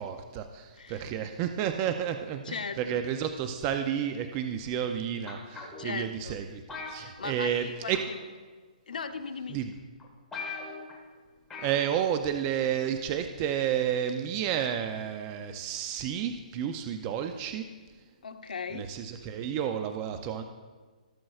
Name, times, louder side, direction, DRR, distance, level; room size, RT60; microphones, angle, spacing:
voice 1, 0.0-6.6 6.9-8.0 9.5-9.7 10.5-10.6 11.6-17.7 18.7-20.4, right 9 dB, 20° right, 7 dB, 0.4 m, -31 dB
voice 2, 2.4-3.0 5.8-6.4 7.0-8.2 8.9-9.6 18.2-18.9, left 5 dB, 85° left, 8 dB, 0.8 m, -38 dB
sound 1, 5.3-5.9 6.7-7.6 7.9-8.2 9.1-9.2 9.7-9.8 10.0-10.1 10.3-11.0 11.5-11.8 12.1-12.2, left 4 dB, 10° left, 1.3 m, -40 dB
16.0 x 7.6 x 2.4 m, 1.4 s
hypercardioid pair, 165°, 4 cm